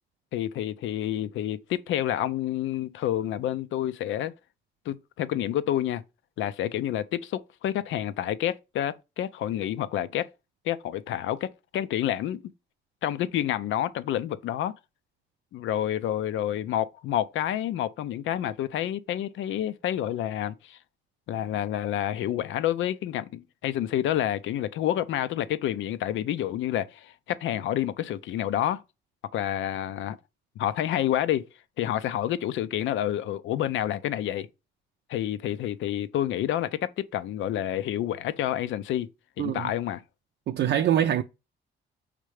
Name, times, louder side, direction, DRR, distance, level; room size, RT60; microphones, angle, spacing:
voice 1, 0.3-4.3 4.9-6.0 6.4-10.3 10.6-12.5 13.0-14.7 15.5-20.8 21.3-28.8 29.3-30.2 30.6-31.5 31.8-34.5 35.1-39.1 39.4-40.0, left 11 dB, 80° left, 0.6 m, -29 dB
voice 2, 39.4-39.7 40.5-41.2, right 10 dB, 60° right, 0.5 m, -24 dB
5.1 x 3.3 x 3.2 m
cardioid pair, 90°, 20 cm